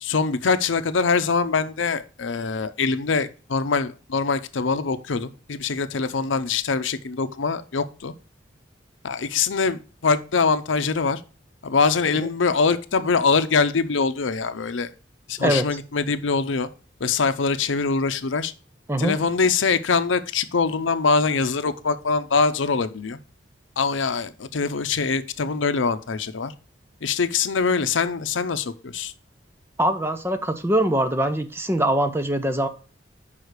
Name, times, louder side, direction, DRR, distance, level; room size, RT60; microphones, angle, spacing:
voice 1, 0.0-8.1 9.0-11.2 11.6-14.9 15.3-16.7 17.0-18.5 19.0-23.2 23.8-26.5 27.0-29.1, left 4 dB, 90° left, 12 dB, 0.6 m, -23 dB
voice 2, 29.8-32.7, right 1 dB, 15° right, 8 dB, 0.6 m, -23 dB
5.6 x 4.8 x 6.5 m, 0.37 s
head